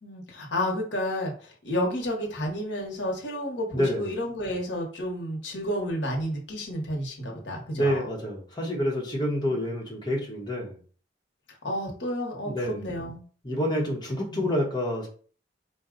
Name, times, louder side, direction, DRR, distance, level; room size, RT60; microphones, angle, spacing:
voice 1, 0.0-8.1 11.6-13.2 14.3-14.5, equal, 80° left, 0 dB, 1.0 m, -31 dB
voice 2, 3.7-4.1 7.7-10.7 12.4-12.8 13.4-15.1, equal, 25° left, -2 dB, 1.0 m, -28 dB
4.2 x 2.2 x 3.7 m, 0.42 s
head